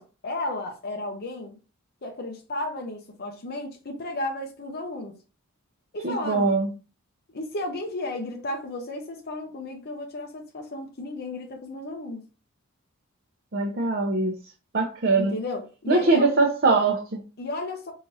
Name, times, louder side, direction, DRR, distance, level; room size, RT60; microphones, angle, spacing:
voice 1, 0.0-1.6 2.0-5.1 5.9-6.6 7.3-12.3 15.1-16.3 17.4-17.9, left 2 dB, 50° left, 0.7 m, -33 dB
voice 2, 6.0-6.7 13.5-14.4 14.7-15.4 15.9-17.2, right 3 dB, 50° right, 0.7 m, -22 dB
4.5 x 3.7 x 2.6 m
head